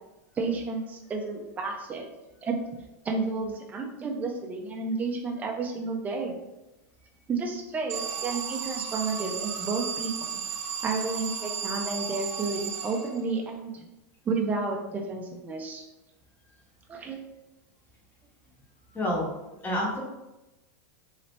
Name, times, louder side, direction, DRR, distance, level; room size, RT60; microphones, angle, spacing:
voice 1, 0.4-2.1 2.4-2.6 3.0-6.3 7.3-10.4 10.8-13.8 14.3-15.8 16.9-17.2, right 4 dB, 20° right, 1 dB, 0.5 m, -31 dB
Alarm, 7.9-13.5, right 7 dB, 65° right, 0.7 m, -34 dB
voice 2, 18.9-19.4 19.6-20.0, equal, 20° left, -4 dB, 1.1 m, -28 dB
3.2 x 2.7 x 3.1 m, 0.97 s
hypercardioid pair, 120°, 9 cm